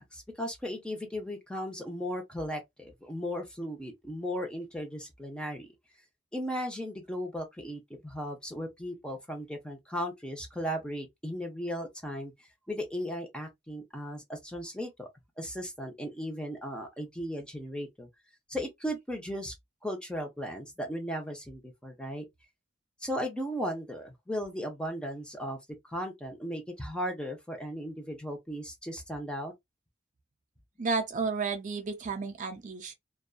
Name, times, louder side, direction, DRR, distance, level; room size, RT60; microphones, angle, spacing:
voice 1, 0.0-5.7 6.3-12.3 12.7-15.1 15.4-18.1 18.5-19.5 19.8-22.3 23.0-25.6 25.8-29.5, equal, 5° left, 0.6 m, -36 dB
voice 2, 30.8-32.9, right 4 dB, 40° right, 0.4 m, -32 dB
2.6 x 2.3 x 2.3 m
head